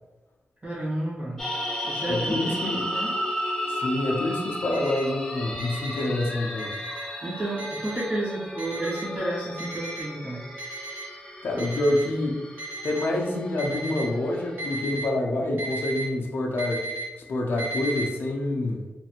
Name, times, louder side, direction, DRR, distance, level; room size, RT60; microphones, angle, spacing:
voice 1, 0.6-1.4 1.8-3.1 7.2-10.4, right 1 dB, 35° right, -9 dB, 1.4 m, -31 dB
sound 1, 1.4-14.8, equal, 15° left, 0.7 m, -34 dB
voice 2, 2.1-2.9 3.7-6.8 11.4-12.4 12.8-16.9 17.3-18.9, left 1 dB, 65° left, 0 dB, 0.5 m, -27 dB
Alarm, 4.7-5.0 5.6-6.0 6.6-7.0 7.6-8.0 8.6-9.0 9.6-10.0 10.6-11.0 11.6-12.0 12.6-13.0 13.6-14.0 14.6-15.0 15.6-16.0 16.6-17.0 17.6-18.0, right 1 dB, 65° right, 1.4 m, -35 dB
3.2 x 2.5 x 2.8 m, 1.2 s
wide cardioid pair, 125°, 4 cm